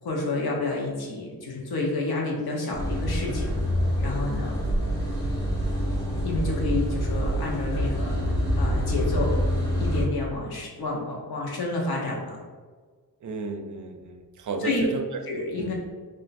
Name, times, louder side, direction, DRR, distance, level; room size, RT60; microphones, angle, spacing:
voice 1, 0.0-3.5 4.0-4.6 6.2-9.3 9.8-12.4 14.6-14.8 15.3-15.7, left 2 dB, 90° left, -2 dB, 1.0 m, -29 dB
sound 1, 2.7-10.0, equal, 10° left, 1.3 m, -26 dB
voice 2, 13.2-15.1 15.6-15.7, right 3 dB, 55° right, 5 dB, 0.5 m, -33 dB
3.3 x 2.7 x 4.1 m, 1.5 s
wide cardioid pair, 130°, 37 cm